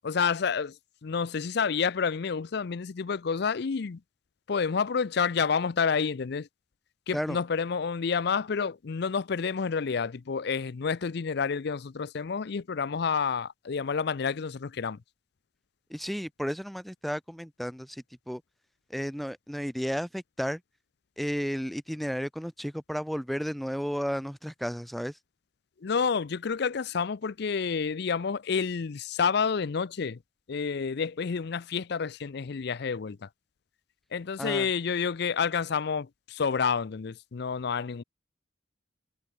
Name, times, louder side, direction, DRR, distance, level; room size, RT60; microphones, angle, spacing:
voice 1, 0.0-0.7 1.0-4.0 4.5-6.5 7.1-15.0 25.8-30.2 30.5-33.3 34.1-38.0, left 6 dB, 60° left, 0.5 m, -29 dB
voice 2, 15.9-18.4 18.9-20.6 21.2-25.1 34.4-34.7, equal, ahead, 1.3 m, -33 dB
head